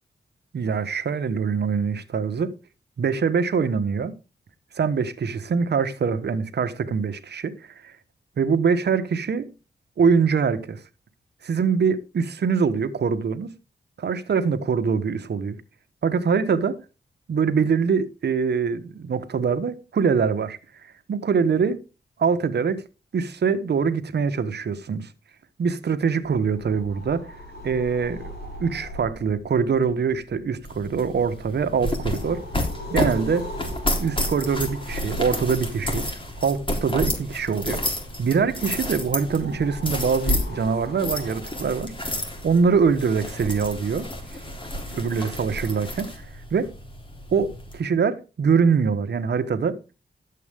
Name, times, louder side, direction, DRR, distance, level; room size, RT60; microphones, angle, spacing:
voice 1, 0.5-2.5 3.0-4.1 4.7-7.5 7.8-7.9 8.4-9.5 10.0-10.8 11.4-13.5 14.0-15.6 16.0-16.8 17.3-21.8 22.2-22.8 23.1-25.1 25.6-27.3 27.6-28.3 28.6-32.4 32.9-33.5 34.0-36.1 36.4-37.8 38.2-41.9 42.4-44.1 44.9-46.2 46.5-46.7 47.3-49.8, right 5 dB, 70° right, 1.3 m, -23 dB
sound 1, 26.2-45.0, equal, 65° left, 3.5 m, -41 dB
sound 2, 30.6-47.8, left 1 dB, 30° left, 3.6 m, -31 dB
12.5 x 8.2 x 3.6 m
cardioid pair, 75°, 18 cm